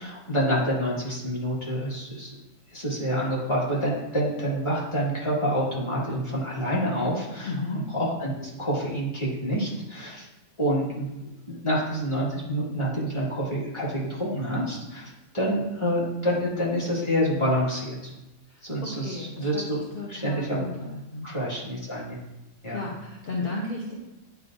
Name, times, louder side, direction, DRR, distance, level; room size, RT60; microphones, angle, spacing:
voice 1, 0.0-2.3 2.7-7.5 8.0-10.3 10.6-18.1 18.6-19.8 20.1-20.6 21.2-22.2 22.6-22.8, equal, 20° left, -6 dB, 1.8 m, -27 dB
voice 2, 7.4-7.8 18.5-19.6 19.9-21.3 22.7-23.9, left 3 dB, 45° left, -3 dB, 0.9 m, -34 dB
9.8 x 4.4 x 2.6 m, 0.98 s
omnidirectional pair, 1.5 m